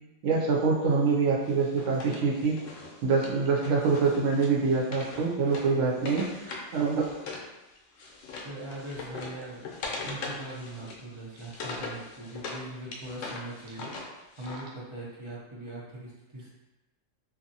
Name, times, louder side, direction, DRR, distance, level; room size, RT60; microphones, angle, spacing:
voice 1, 0.2-2.6 3.0-7.1, right 4 dB, 75° right, -2 dB, 1.0 m, -25 dB
Wood, 1.4-7.5 7.8-12.6 12.9-14.6, left 3 dB, 75° left, 0.9 m, -41 dB
voice 2, 8.4-13.9 14.4-16.5, right 2 dB, 35° right, -6 dB, 0.5 m, -41 dB
2.7 x 2.5 x 2.7 m, 1.1 s
omnidirectional pair, 1.4 m